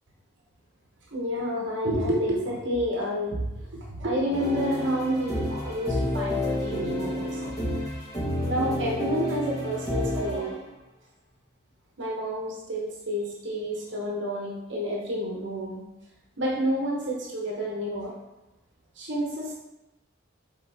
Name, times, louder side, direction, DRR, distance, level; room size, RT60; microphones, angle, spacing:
voice 1, 1.1-3.5 3.7-7.5 8.5-10.7 12.0-15.8 16.4-18.1 19.0-19.5, equal, 65° right, -3 dB, 1.2 m, -29 dB
sound 1, 4.3-10.5, left 1 dB, 20° left, 1.4 m, -30 dB
7.0 x 4.1 x 3.5 m, 0.97 s
head